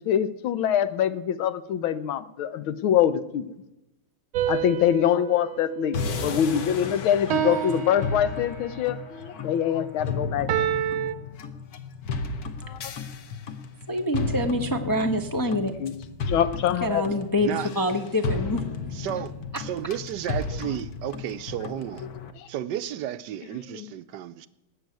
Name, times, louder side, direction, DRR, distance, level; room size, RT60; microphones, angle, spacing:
voice 1, 0.0-3.4 4.5-10.7 12.6-12.8 15.8-15.9 16.3-17.0 22.4-22.5 23.7-23.9, left 9 dB, 80° left, 1.7 m, -24 dB
sound 1, 4.3-6.7 7.3-8.9 10.5-11.1, right 10 dB, 85° right, 1.7 m, -29 dB
sound 2, 5.9-22.3, left 4 dB, 55° left, 1.4 m, -34 dB
voice 2, 13.9-15.7 16.8-18.6, left 1 dB, 25° left, 0.4 m, -26 dB
voice 3, 18.9-22.1 22.5-24.5, right 11 dB, 70° right, 1.1 m, -33 dB
19.0 x 7.0 x 9.2 m
omnidirectional pair, 2.2 m